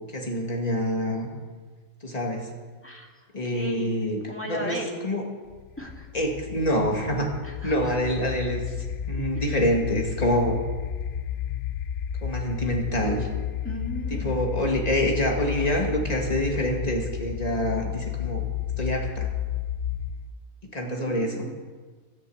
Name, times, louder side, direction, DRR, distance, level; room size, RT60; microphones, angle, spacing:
voice 1, 0.1-1.3 2.0-2.5 3.3-4.2 4.5-5.2 6.1-7.3 7.6-8.6 9.1-10.6 12.2-13.3 14.1-18.5 18.8-19.3 20.7-21.5, equal, 25° left, 1 dB, 2.2 m, -26 dB
voice 2, 3.5-3.9 4.3-5.0 5.8-6.1 7.4-7.9 13.6-14.6 20.9-21.5, equal, 10° left, -1 dB, 2.2 m, -36 dB
sound 1, 5.5-20.4, left 9 dB, 85° left, 0.4 m, -32 dB
13.0 x 11.0 x 8.0 m, 1.4 s
omnidirectional pair, 1.5 m